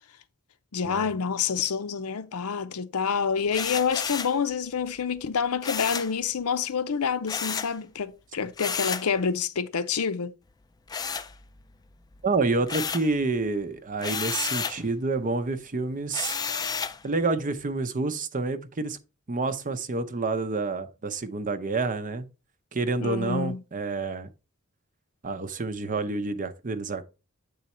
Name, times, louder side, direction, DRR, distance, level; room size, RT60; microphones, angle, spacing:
voice 1, 0.7-10.3 23.0-23.6, left 6 dB, 85° left, 0.7 m, -28 dB
sound 1, 3.5-4.4 5.6-6.2 7.3-7.8 8.6-9.1 10.9-11.8 12.1-13.1 14.0-14.8 16.1-17.0, left 6 dB, 15° left, 0.3 m, -31 dB
voice 2, 12.2-16.4 17.0-19.0 19.3-22.3 22.7-24.3 25.2-27.0, right 3 dB, 35° right, 0.6 m, -28 dB
8.3 x 4.0 x 4.2 m
head